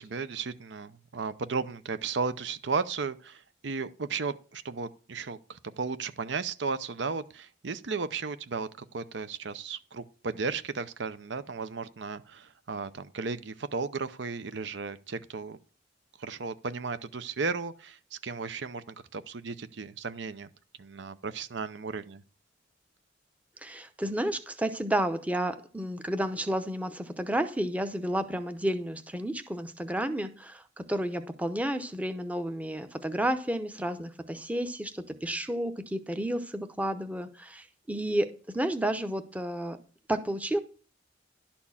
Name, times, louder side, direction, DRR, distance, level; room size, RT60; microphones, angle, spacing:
voice 1, 0.0-15.6 16.2-20.5 20.8-22.2, right 4 dB, 65° right, 0.7 m, -35 dB
voice 2, 23.6-38.3 38.5-39.8 40.1-40.6, right 1 dB, 10° right, 0.7 m, -31 dB
11.5 x 4.4 x 7.1 m
head